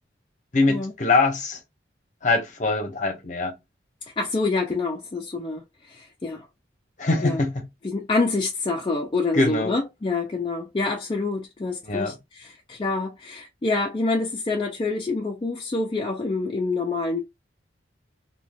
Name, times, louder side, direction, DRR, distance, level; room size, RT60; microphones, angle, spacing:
voice 1, 0.5-1.6 2.2-3.6 7.0-7.7 9.3-9.7 11.8-12.2, left 3 dB, 40° left, 0.7 m, -23 dB
voice 2, 4.2-6.5 7.2-7.4 7.8-17.2, left 3 dB, 25° left, 0.3 m, -27 dB
2.4 x 2.2 x 3.3 m
head